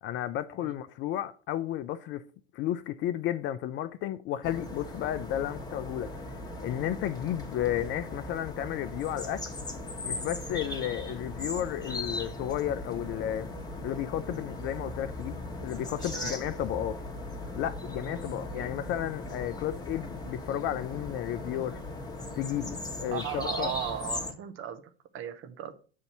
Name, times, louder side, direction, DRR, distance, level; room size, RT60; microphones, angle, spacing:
voice 1, 0.0-2.2 2.5-6.1 6.6-9.4 10.0-13.5 13.8-17.0 17.5-21.8 22.4-23.7, left 12 dB, 40° left, 0.4 m, -33 dB
sound 1, 4.4-24.3, left 2 dB, 10° left, 1.1 m, -38 dB
voice 2, 16.0-16.4 18.0-18.2 18.5-18.7 23.1-24.8 25.1-25.7, right 10 dB, 40° right, 0.7 m, -37 dB
7.4 x 2.6 x 5.8 m
hypercardioid pair, 85°, 32 cm